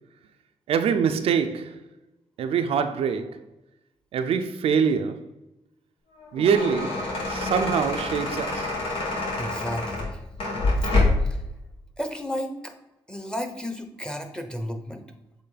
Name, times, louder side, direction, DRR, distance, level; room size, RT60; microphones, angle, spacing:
voice 1, 0.7-1.8 2.4-3.4 4.1-5.3 6.3-8.7, right 6 dB, 85° right, 0.5 m, -24 dB
sound 1, 6.2-11.4, left 2 dB, 75° left, 2.0 m, -26 dB
voice 2, 9.4-10.2 10.8-10.9 11.2-11.4 12.0-12.7 13.1-15.0, equal, 10° left, 1.0 m, -33 dB
7.8 x 3.2 x 4.0 m
cardioid pair, 70°, 10 cm